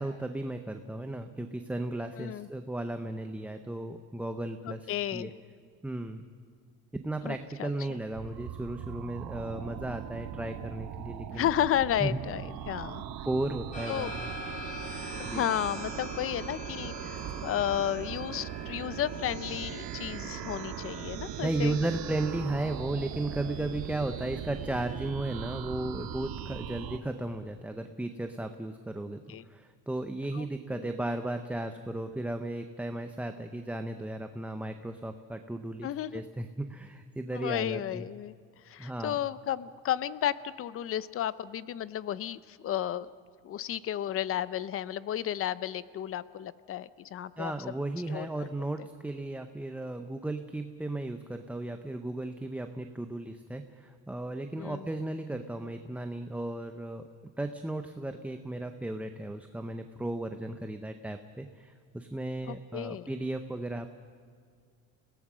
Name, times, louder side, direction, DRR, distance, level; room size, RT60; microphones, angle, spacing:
voice 1, 0.0-5.3 5.8-6.3 6.9-11.5 12.0-12.2 13.2-14.3 15.2-15.4 21.4-38.1 38.8-39.2 47.4-57.1 57.4-63.9, right 2 dB, 5° right, 6 dB, 0.6 m, -35 dB
voice 2, 2.2-2.5 4.6-5.3 7.2-8.0 11.3-13.1 13.9-14.1 15.1-21.8 29.3-29.4 30.3-30.8 35.8-36.2 37.3-38.3 38.7-43.1 43.4-47.5 48.1-48.3 54.6-54.9 62.4-63.1, left 11 dB, 40° left, 17 dB, 0.6 m, -33 dB
sound 1, 8.1-27.0, right 10 dB, 85° right, 1.7 m, -40 dB
sound 2, 13.7-22.0, left 1 dB, 20° left, 5.2 m, -44 dB
sound 3, 16.7-25.1, right 11 dB, 45° right, 0.7 m, -47 dB
29.5 x 17.5 x 6.2 m, 2.1 s
cardioid pair, 150°, 35 cm